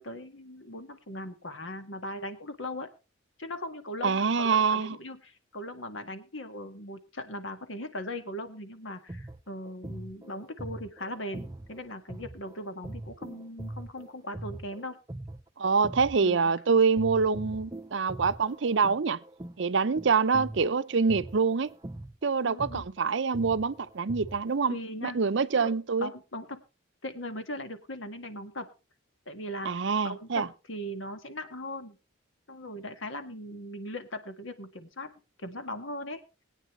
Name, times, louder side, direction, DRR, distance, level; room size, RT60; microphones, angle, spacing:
voice 1, 0.0-2.9 3.4-15.0 16.2-16.5 22.4-22.9 24.7-25.2 25.5-25.7 26.0-26.6 27.0-28.7 29.3-32.0 32.5-35.1 35.4-36.2, left 1 dB, 70° left, 1.8 m, -39 dB
voice 2, 4.0-5.0 15.6-19.2 19.6-21.7 22.2-24.8 25.0-26.1 29.7-30.5, right 5 dB, 65° right, 0.6 m, -25 dB
sound 1, 8.9-16.6 17.0-24.6, right 1 dB, 20° right, 0.6 m, -42 dB
21.5 x 9.1 x 3.2 m
head